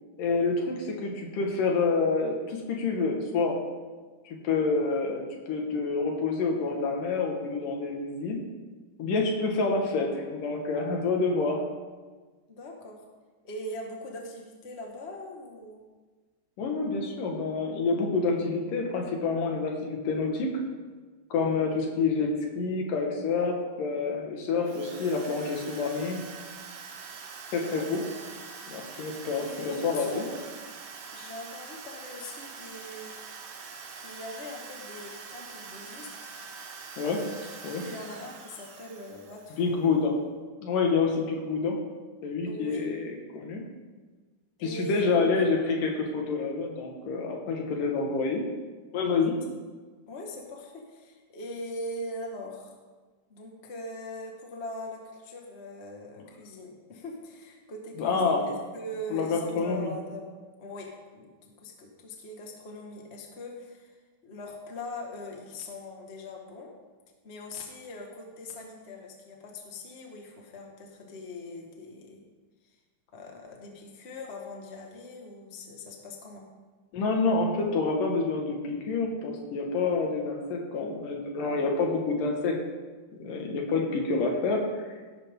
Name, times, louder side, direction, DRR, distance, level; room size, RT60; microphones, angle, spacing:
voice 1, 0.2-3.6 4.2-8.4 9.0-11.6 16.6-20.5 21.3-26.2 27.5-28.0 28.7-30.2 37.0-37.2 37.6-37.8 39.6-40.2 40.6-41.8 42.2-43.6 44.6-48.4 48.9-49.4 58.0-58.4 59.1-59.9 76.9-82.6 83.2-85.2, left 4 dB, 75° left, 1 dB, 3.3 m, -28 dB
voice 2, 12.5-13.1 13.4-15.8 27.7-28.0 29.2-30.5 31.0-33.1 34.0-36.3 37.2-37.5 37.8-39.8 42.4-42.9 44.6-45.3 50.1-52.7 53.3-60.3 60.6-66.7 67.2-72.3 73.1-76.5, left 1 dB, 30° left, 0 dB, 1.4 m, -41 dB
Drill, 24.6-39.8, right 5 dB, 80° right, 3.0 m, -44 dB
17.0 x 12.0 x 3.8 m, 1.4 s
omnidirectional pair, 3.9 m